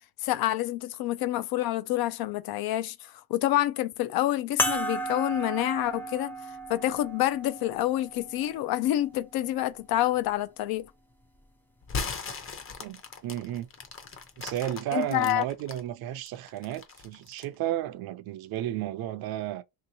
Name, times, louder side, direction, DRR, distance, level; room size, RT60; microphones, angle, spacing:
voice 1, 0.2-6.4 6.7-10.9 14.9-15.4, left 14 dB, 60° left, 0.5 m, -28 dB
sound 1, 4.6-9.4 10.2-10.3 12.4-12.5, equal, 5° left, 0.3 m, -34 dB
sound 2, 11.8-15.8 16.3-17.5, left 5 dB, 30° left, 0.7 m, -37 dB
voice 2, 12.8-13.7 14.4-19.6, right 13 dB, 60° right, 0.5 m, -33 dB
3.1 x 2.9 x 2.7 m
cardioid pair, 125°, 42 cm